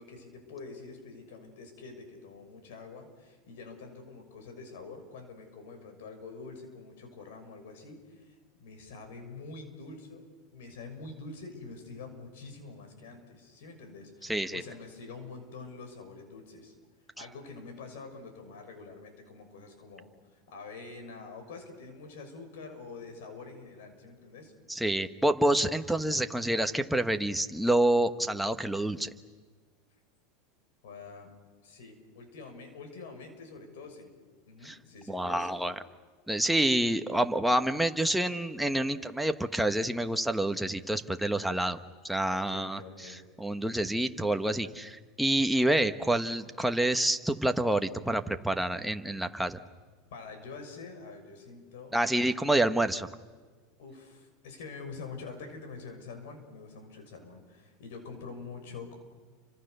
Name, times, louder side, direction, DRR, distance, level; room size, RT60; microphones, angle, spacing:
voice 1, 0.0-10.3 10.5-16.7 17.2-24.5 30.8-31.3 31.6-34.1 34.5-35.5 42.3-43.3 50.1-51.9 53.8-58.9, left 4 dB, 80° left, 6 dB, 6.6 m, -46 dB
voice 2, 14.2-14.6 24.7-29.1 34.6-34.8 35.1-35.7 36.3-41.8 42.0-49.6 51.9-53.1, right 1 dB, ahead, 7 dB, 1.2 m, -28 dB
30.0 x 25.5 x 6.8 m, 1.4 s
supercardioid pair, 140°, 0 cm